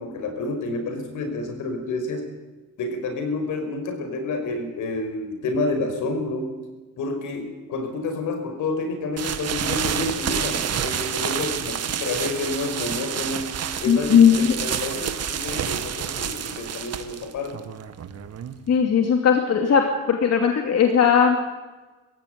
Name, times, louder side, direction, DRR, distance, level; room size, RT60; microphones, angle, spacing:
voice 1, 0.0-2.2 2.8-6.5 7.0-13.5 13.8-17.7, left 2 dB, 80° left, 6 dB, 5.6 m, -29 dB
sound 1, 9.2-18.8, right 8 dB, 55° right, 1.8 m, -29 dB
voice 2, 13.9-14.5 18.7-21.4, left 7 dB, 55° left, 3 dB, 2.7 m, -18 dB
22.5 x 16.0 x 9.4 m, 1.2 s
cardioid pair, 90°, 30 cm